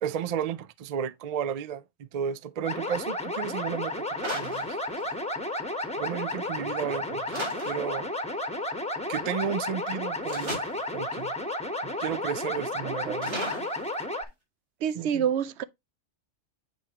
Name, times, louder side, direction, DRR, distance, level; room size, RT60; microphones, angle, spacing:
voice 1, 0.0-4.1 4.3-4.7 6.0-8.1 9.1-10.6 10.9-11.3 11.8-13.4 15.0-15.2, right 8 dB, 55° right, 0.4 m, -33 dB
sound 1, 2.6-14.2, left 1 dB, 5° left, 0.9 m, -32 dB
sound 2, 4.2-5.4 7.3-8.0 10.3-10.9 13.2-14.3, equal, 90° right, 4.0 m, -36 dB
voice 2, 12.8-13.1 14.8-15.6, right 8 dB, 70° right, 0.8 m, -28 dB
8.4 x 4.7 x 2.8 m
omnidirectional pair, 1.2 m